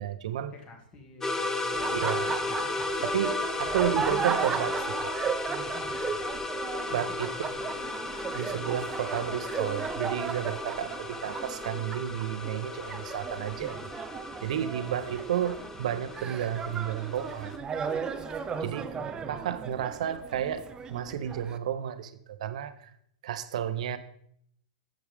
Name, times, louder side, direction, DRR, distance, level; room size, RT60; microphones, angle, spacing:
voice 1, 0.0-0.5 1.9-2.3 3.0-5.1 6.9-7.3 8.3-13.8 14.4-17.5 18.6-18.9 19.3-20.6 20.9-22.9 23.2-24.0, right 10 dB, 70° right, 11 dB, 0.9 m, -32 dB
voice 2, 0.5-2.5 6.9-7.7 8.5-8.7 18.5-19.6, left 3 dB, 30° left, 2 dB, 2.4 m, -50 dB
sound 1, 1.2-17.6, left 2 dB, 10° left, 0.8 m, -35 dB
Laughter, 1.7-21.6, right 6 dB, 20° right, 0.6 m, -36 dB
sound 2, 12.0-14.8 17.4-20.1, left 3 dB, 80° left, 3.2 m, -52 dB
11.0 x 7.9 x 3.6 m, 0.68 s
hypercardioid pair, 125°, 4 cm